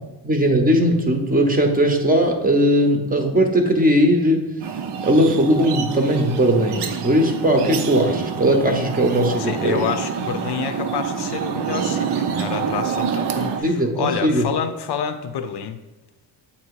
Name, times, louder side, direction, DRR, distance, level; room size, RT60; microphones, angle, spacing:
voice 1, 0.2-4.5 5.0-9.8 13.6-14.5, equal, 20° right, 4 dB, 0.7 m, -18 dB
sound 1, 4.6-13.6, right 7 dB, 75° right, 0.6 m, -27 dB
voice 2, 9.4-15.8, left 8 dB, 70° left, 8 dB, 0.6 m, -28 dB
7.2 x 2.8 x 4.6 m, 1.1 s
cardioid pair, 135°, 41 cm